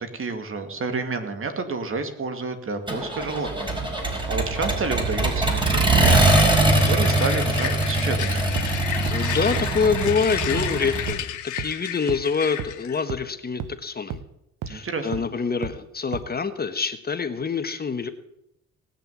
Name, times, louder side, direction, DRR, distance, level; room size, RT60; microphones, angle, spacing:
voice 1, 0.0-6.6 6.9-8.6 14.7-15.2, right 4 dB, 45° right, 7 dB, 2.5 m, -30 dB
Accelerating revving vroom, 2.9-11.1, right 2 dB, 15° right, 4.7 m, -22 dB
sound 1, 5.9-13.0, left 11 dB, 75° left, 1.5 m, -33 dB
sound 2, 8.6-8.7 9.1-9.2 9.6-9.7 10.1-10.2 10.6-10.7 11.1-11.2 11.6-11.7 12.1-12.2 12.6-12.7 13.1-13.2 13.6-13.7 14.1-14.2 14.6-14.7 15.1-15.2 15.6-15.7 16.1-16.2, right 8 dB, 85° right, 1.1 m, -31 dB
voice 2, 9.1-14.2 14.7-18.1, left 5 dB, 30° left, 9 dB, 1.3 m, -26 dB
18.5 x 6.7 x 9.4 m, 0.80 s
cardioid pair, 90°, 30 cm